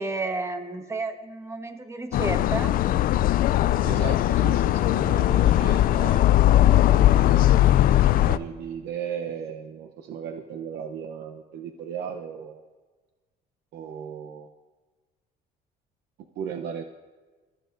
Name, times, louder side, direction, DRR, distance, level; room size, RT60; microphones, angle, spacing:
voice 1, 0.0-2.7, right 3 dB, 15° right, 7 dB, 1.2 m, -31 dB
sound 1, 2.1-8.4, left 13 dB, 55° left, 0.4 m, -19 dB
voice 2, 3.8-6.3 7.0-7.5 8.0-12.6 13.7-14.5 16.4-16.8, right 8 dB, 80° right, 5 dB, 0.8 m, -36 dB
24.5 x 14.0 x 2.6 m, 1.3 s
cardioid pair, 110°, 17 cm